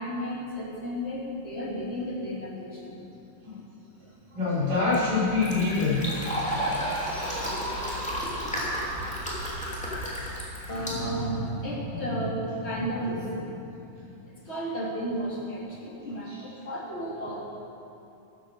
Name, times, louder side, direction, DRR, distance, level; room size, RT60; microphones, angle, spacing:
voice 1, 0.0-3.0 10.7-17.5, equal, 20° left, -5 dB, 2.3 m, -33 dB
sound 1, 4.0-9.6, left 1 dB, 55° left, 4.5 m, -42 dB
voice 2, 4.3-6.0 9.6-9.7 10.2-10.3 16.3-16.4, left 4 dB, 25° right, -10 dB, 4.8 m, -26 dB
Fill (with liquid), 4.6-11.7, equal, ahead, 2.2 m, -33 dB
14.0 x 11.0 x 6.5 m, 2.7 s
omnidirectional pair, 4.0 m